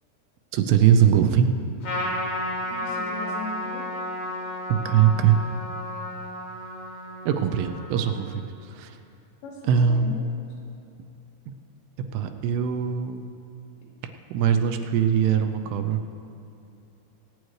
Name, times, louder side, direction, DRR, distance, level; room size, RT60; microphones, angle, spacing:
voice 1, 0.5-1.5 4.7-5.4 7.3-9.0 9.7-10.1 11.5-11.6 12.0-13.3 14.3-16.2, right 8 dB, 80° right, 7 dB, 2.7 m, -22 dB
Trumpet, 1.8-8.5, left 1 dB, 55° left, 1.8 m, -33 dB
voice 2, 2.6-3.9 9.4-10.2, left 2 dB, 85° left, -4 dB, 4.3 m, -38 dB
23.5 x 9.1 x 3.2 m, 2.7 s
omnidirectional pair, 5.0 m